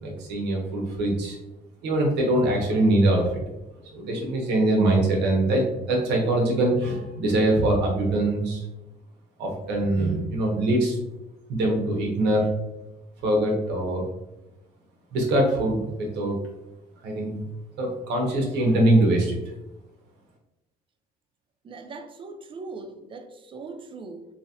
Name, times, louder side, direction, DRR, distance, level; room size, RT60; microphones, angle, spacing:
voice 1, 0.0-1.4 1.8-3.4 3.9-8.6 9.4-11.0 11.5-12.5 13.2-14.1 15.1-16.4 17.0-17.4 17.8-19.4, right 1 dB, 85° right, 0.9 m, -23 dB
voice 2, 21.6-24.3, right 3 dB, 30° right, 0.4 m, -40 dB
2.9 x 2.5 x 2.8 m
cardioid pair, 110°, 17 cm